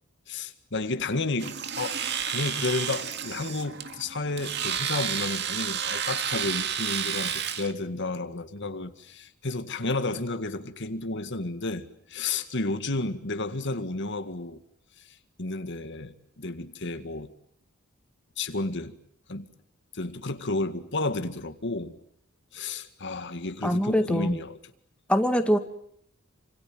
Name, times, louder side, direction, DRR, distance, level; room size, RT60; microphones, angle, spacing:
voice 1, 0.3-14.6 15.0-17.3 18.4-19.0 19.3-19.5 19.9-22.0 22.5-24.6, left 2 dB, 60° left, 2.0 m, -32 dB
Domestic sounds home sounds, 1.4-7.7, right 8 dB, 55° right, 2.1 m, -31 dB
voice 2, 23.6-24.4 25.1-25.6, equal, 5° left, 2.0 m, -23 dB
28.5 x 26.5 x 7.8 m
head